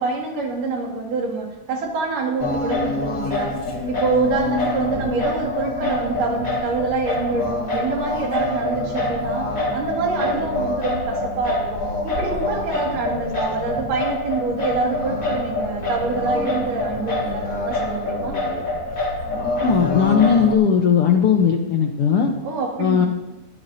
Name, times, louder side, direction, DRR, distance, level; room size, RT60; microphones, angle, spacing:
voice 1, 0.0-3.6 3.9-9.5 9.7-18.4 22.4-23.1, right 4 dB, 80° right, -1 dB, 3.9 m, -26 dB
Singing, 2.4-20.5, left 2 dB, 35° left, 1.7 m, -25 dB
voice 2, 19.6-22.3 22.8-23.1, left 7 dB, 70° left, 3 dB, 1.4 m, -17 dB
22.5 x 12.5 x 2.8 m, 1.0 s
omnidirectional pair, 3.7 m